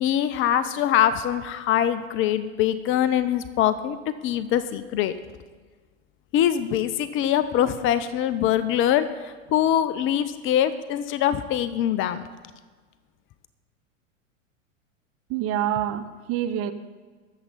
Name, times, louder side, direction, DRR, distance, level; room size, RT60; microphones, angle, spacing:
voice 1, 0.0-4.0 4.2-5.1 6.3-9.1 9.5-12.3, left 10 dB, 30° left, 13 dB, 0.6 m, -23 dB
voice 2, 15.3-16.7, right 11 dB, 35° right, 10 dB, 0.8 m, -26 dB
21.0 x 7.3 x 4.0 m, 1.5 s
hypercardioid pair, 100°, 40 cm